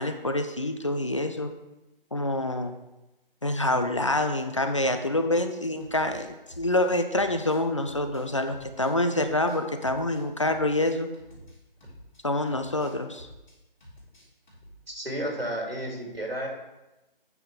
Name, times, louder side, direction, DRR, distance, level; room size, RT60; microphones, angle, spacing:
voice 1, 0.0-1.5 2.1-2.8 3.4-11.1 12.2-13.3, left 1 dB, 35° left, 7 dB, 0.5 m, -26 dB
sound 1, 5.5-12.2 12.5-13.6 13.8-14.8, equal, 50° left, 3.1 m, -50 dB
voice 2, 14.9-16.5, right 1 dB, 90° right, -1 dB, 3.1 m, -32 dB
9.0 x 5.9 x 4.9 m, 0.99 s
figure-of-eight pair, 150°, 29 cm